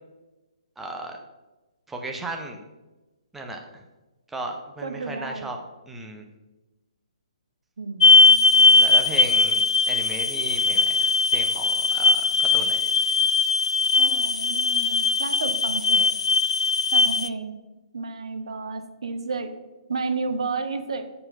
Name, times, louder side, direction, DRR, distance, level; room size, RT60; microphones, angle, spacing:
voice 1, 0.8-1.2 1.9-2.6 3.3-3.8 4.3-5.6 5.9-6.2 8.6-12.9, right 2 dB, 5° right, 2 dB, 0.7 m, -36 dB
voice 2, 4.8-5.5 7.8-8.6 14.0-16.1 16.9-17.6 17.9-19.5 19.9-21.1, right 4 dB, 60° right, 8 dB, 0.7 m, -32 dB
sound 1, 8.0-17.3, left 4 dB, 60° left, 0.4 m, -19 dB
6.6 x 4.3 x 5.6 m, 1.1 s
figure-of-eight pair, 130°, 3 cm